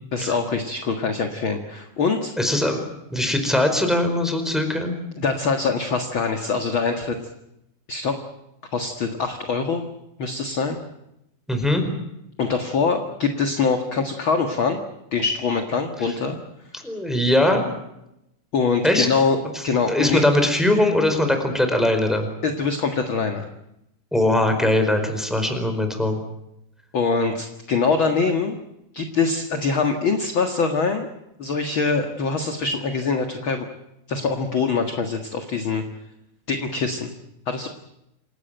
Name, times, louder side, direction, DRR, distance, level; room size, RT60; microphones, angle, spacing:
voice 1, 0.1-2.3 5.2-7.2 7.9-8.2 8.7-9.9 10.2-10.8 12.4-14.8 15.1-16.4 18.5-19.4 19.6-20.2 22.4-23.5 26.9-28.6 28.9-31.1 31.4-33.7 34.1-35.8 36.5-37.1 37.5-37.7, left 4 dB, 45° left, 5 dB, 2.2 m, -23 dB
voice 2, 2.4-4.9 11.5-11.8 16.7-17.7 18.8-19.1 19.8-22.3 24.1-26.2, left 1 dB, ahead, 5 dB, 4.5 m, -21 dB
28.0 x 17.5 x 9.2 m, 0.85 s
omnidirectional pair, 3.6 m